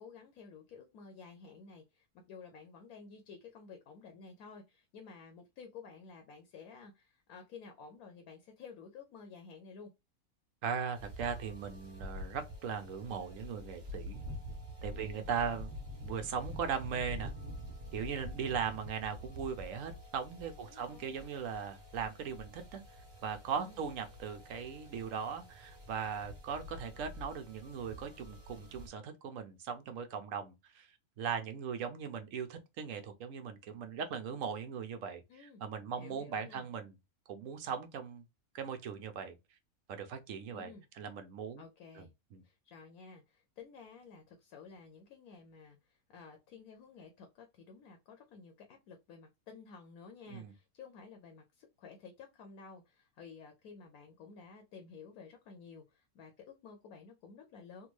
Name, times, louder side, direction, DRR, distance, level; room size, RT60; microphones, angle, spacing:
voice 1, 0.0-9.9 14.9-15.3 20.6-21.2 23.6-23.8 35.3-35.6 35.9-36.7 40.5-40.8 41.6-42.1 42.4-57.9, left 5 dB, 75° left, 1.1 m, -53 dB
voice 2, 10.6-14.3 14.8-15.7 16.0-17.3 17.9-22.8 23.2-30.9 31.2-36.9 37.3-38.2 38.5-39.4 39.9-41.6 42.0-42.1 42.3-42.4 50.3-50.5, right 7 dB, 70° right, 1.0 m, -39 dB
sound 1, 10.9-28.9, left 1 dB, 20° right, 1.3 m, -47 dB
3.5 x 2.2 x 3.0 m
omnidirectional pair, 1.5 m